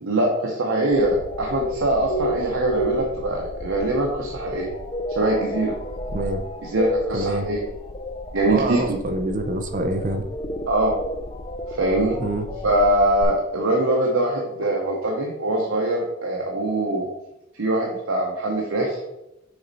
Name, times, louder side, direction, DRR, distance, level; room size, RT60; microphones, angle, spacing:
voice 1, 0.0-4.7 5.1-5.7 6.6-7.6 8.3-9.0 10.7-11.0 11.7-12.2 12.6-17.1 17.5-19.0, right 1 dB, 80° right, -1 dB, 0.9 m, -23 dB
sound 1, 0.9-13.2, left 1 dB, 25° left, 0.4 m, -31 dB
voice 2, 6.1-6.4 7.1-7.5 8.5-10.3 12.2-12.5, right 1 dB, 40° right, 6 dB, 0.6 m, -26 dB
6.5 x 4.1 x 4.1 m, 0.90 s
head